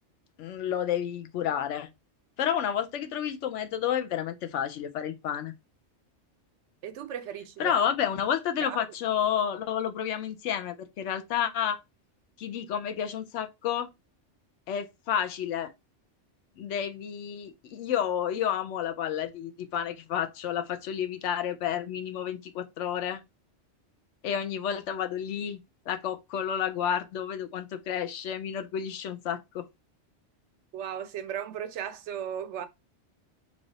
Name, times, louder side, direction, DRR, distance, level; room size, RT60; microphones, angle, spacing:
voice 1, 0.4-1.9 2.4-5.5 7.6-11.8 12.4-13.9 14.7-15.7 16.6-23.2 24.2-25.6 25.9-29.7, left 9 dB, 85° left, 0.9 m, -30 dB
voice 2, 6.8-7.7 8.6-8.8 30.7-32.7, right 9 dB, 75° right, 0.9 m, -36 dB
3.3 x 2.4 x 3.8 m
omnidirectional pair, 1.2 m